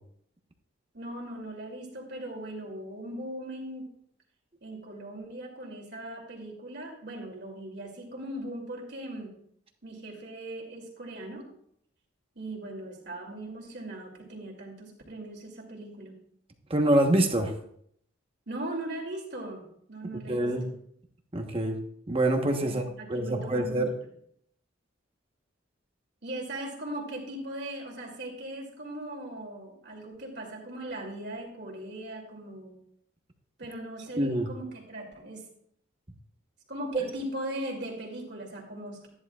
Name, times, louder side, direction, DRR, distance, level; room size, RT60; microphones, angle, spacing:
voice 1, 0.9-3.9 4.6-9.3 9.8-11.5 12.3-16.1 18.5-20.7 22.6-23.9 26.2-32.8 33.6-35.4 36.7-39.1, right 1 dB, 55° right, 0 dB, 2.7 m, -39 dB
voice 2, 16.7-17.5 20.1-20.7 21.3-21.8 22.1-23.9 34.2-34.5, right 1 dB, 30° right, 4 dB, 1.1 m, -26 dB
13.5 x 10.5 x 2.4 m, 0.68 s
head